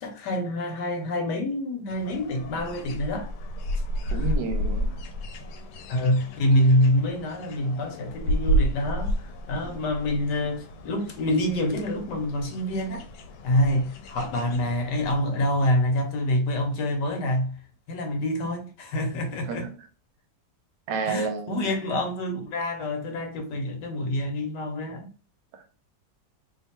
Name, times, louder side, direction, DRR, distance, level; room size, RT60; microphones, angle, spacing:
voice 1, 0.0-3.3 4.0-4.3 5.9-13.0 13.4-17.6 17.9-19.7 21.1-25.1, left 1 dB, 65° left, 1.4 m, -26 dB
sound 1, 1.9-15.1, right 1 dB, 85° left, 1.4 m, -32 dB
voice 2, 4.1-5.0 19.5-19.7 20.9-21.8 25.5-25.6, right 5 dB, 70° right, 1.2 m, -31 dB
3.2 x 2.2 x 4.3 m
omnidirectional pair, 2.1 m